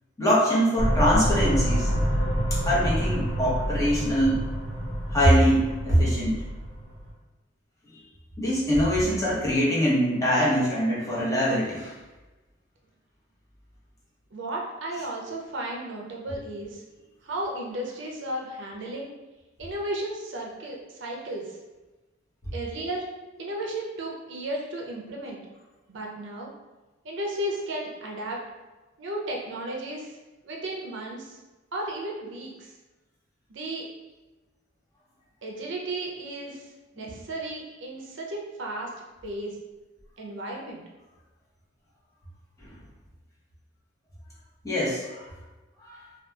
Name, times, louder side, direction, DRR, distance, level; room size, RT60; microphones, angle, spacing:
voice 1, 0.2-2.0 2.7-4.4 5.1-6.4 7.9-8.0 8.4-11.9 42.6-42.7 44.6-45.2 45.8-46.0, equal, 15° left, -8 dB, 0.8 m, -23 dB
sound 1, 0.8-7.1, equal, 90° left, 1.1 m, -27 dB
voice 2, 14.3-16.8 17.2-19.1 19.6-21.6 22.5-23.1 23.4-25.4 25.9-26.5 27.0-28.4 29.0-30.2 30.4-31.4 31.7-32.7 33.5-33.9 35.4-38.9 39.2-39.6 40.2-40.8, right 1 dB, 65° right, -1 dB, 0.5 m, -34 dB
2.7 x 2.3 x 2.3 m, 1.1 s
head